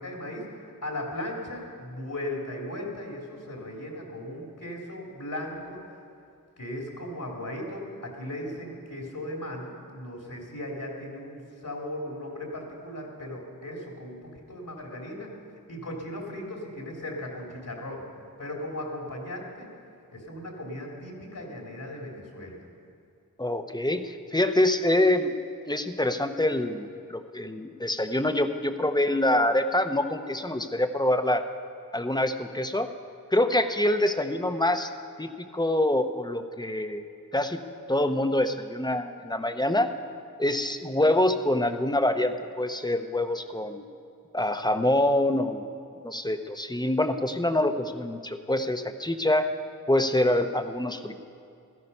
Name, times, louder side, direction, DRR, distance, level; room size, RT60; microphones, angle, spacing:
voice 1, 0.0-5.8 6.6-15.3 15.7-18.0 18.4-19.7 20.1-22.6, left 1 dB, 65° left, -1 dB, 3.0 m, -37 dB
voice 2, 23.4-25.3 25.7-31.4 31.9-32.9 33.3-34.9 35.2-37.0 37.3-37.6 37.9-39.9 40.4-43.8 44.3-45.6 46.0-49.5 49.9-51.1, left 1 dB, 10° left, 8 dB, 0.8 m, -25 dB
15.5 x 13.5 x 5.5 m, 2.5 s
wide cardioid pair, 55°, 34 cm